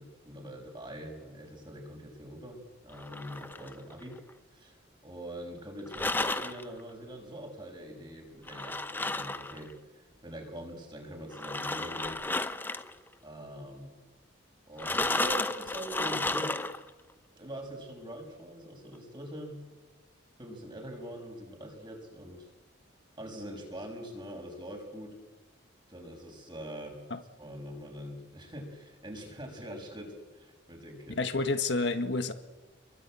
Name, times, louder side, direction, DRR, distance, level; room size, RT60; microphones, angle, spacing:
voice 1, 0.0-4.2 4.5-12.2 13.2-13.9 14.7-16.6 17.3-19.6 20.4-22.5 23.2-25.2 25.9-27.0 27.4-31.2, equal, 25° right, 2 dB, 6.4 m, -43 dB
sound 1, 2.9-4.3 5.9-6.6 8.5-9.7 11.3-12.9 14.8-16.9, left 2 dB, 10° left, 0.8 m, -33 dB
voice 2, 31.2-32.3, left 3 dB, 60° left, 8 dB, 1.6 m, -29 dB
28.0 x 22.5 x 9.0 m, 1.3 s
head